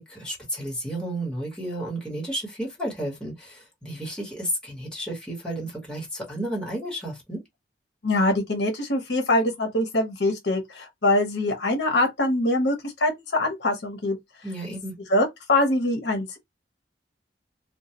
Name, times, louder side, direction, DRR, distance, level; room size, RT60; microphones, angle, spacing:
voice 1, 0.0-7.4 14.4-15.0, right 1 dB, 5° left, 1.1 m, -32 dB
voice 2, 8.0-14.2 15.1-16.4, left 1 dB, 65° left, 0.8 m, -23 dB
2.2 x 2.2 x 2.8 m
head